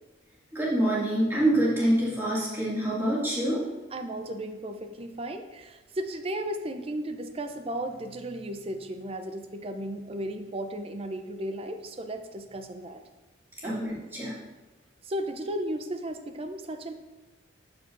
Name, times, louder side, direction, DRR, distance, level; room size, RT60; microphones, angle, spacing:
voice 1, 0.5-3.6 13.6-14.3, right 1 dB, 10° right, -8 dB, 2.1 m, -26 dB
voice 2, 3.9-13.0 13.6-13.8 15.0-16.9, right 1 dB, 30° right, 6 dB, 0.5 m, -35 dB
12.5 x 4.8 x 2.5 m, 1.1 s
head